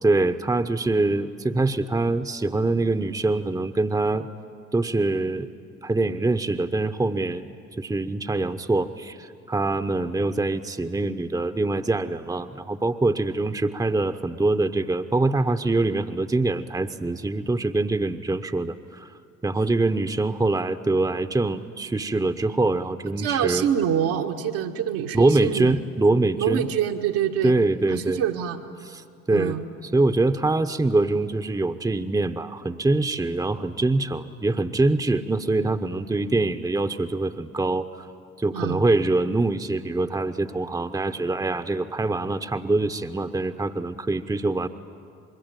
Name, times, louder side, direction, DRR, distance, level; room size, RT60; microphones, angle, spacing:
voice 1, 0.0-4.3 4.7-5.5 5.8-7.5 7.8-19.1 19.4-23.7 25.1-26.7 27.4-28.2 28.9-29.6 29.9-38.1 38.4-44.7, right 2 dB, 10° right, 9 dB, 1.0 m, -24 dB
voice 2, 23.2-25.8 26.4-27.5 27.9-28.6 29.3-29.6 38.5-38.8, right 9 dB, 65° right, 3 dB, 1.7 m, -25 dB
25.5 x 22.0 x 9.3 m, 2.3 s
figure-of-eight pair, 50°, 37 cm